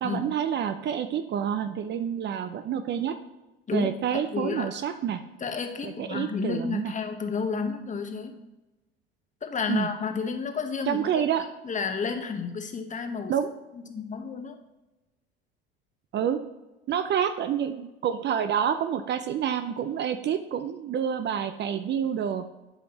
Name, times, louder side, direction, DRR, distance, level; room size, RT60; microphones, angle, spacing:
voice 1, 0.0-3.2 3.7-5.2 5.8-6.9 9.7-9.9 10.9-11.4 13.3-13.5 16.1-16.4 16.9-22.4, right 8 dB, 35° right, 9 dB, 0.5 m, -28 dB
voice 2, 4.3-4.7 5.4-8.4 9.4-11.2 11.6-13.3 13.9-14.6, left 5 dB, 25° left, 6 dB, 1.0 m, -31 dB
12.0 x 5.2 x 2.9 m, 1.0 s
figure-of-eight pair, 65°, 30 cm